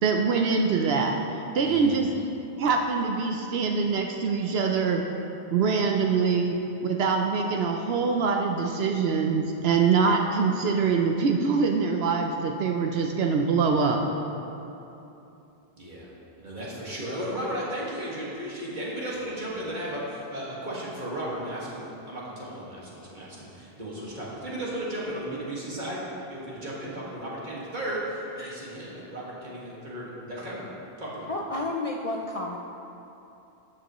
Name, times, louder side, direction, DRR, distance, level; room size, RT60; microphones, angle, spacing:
voice 1, 0.0-1.2 1.5-2.1 2.6-5.0 5.5-6.6 6.8-14.0, right 5 dB, 75° right, 2 dB, 0.9 m, -24 dB
voice 2, 1.6-2.2 15.8-16.1 16.4-26.0 26.3-30.7 31.0-31.3, right 1 dB, 45° right, -6 dB, 2.0 m, -35 dB
voice 3, 31.3-32.6, left 2 dB, 45° left, 0 dB, 0.5 m, -31 dB
12.5 x 7.6 x 3.1 m, 2.9 s
omnidirectional pair, 1.1 m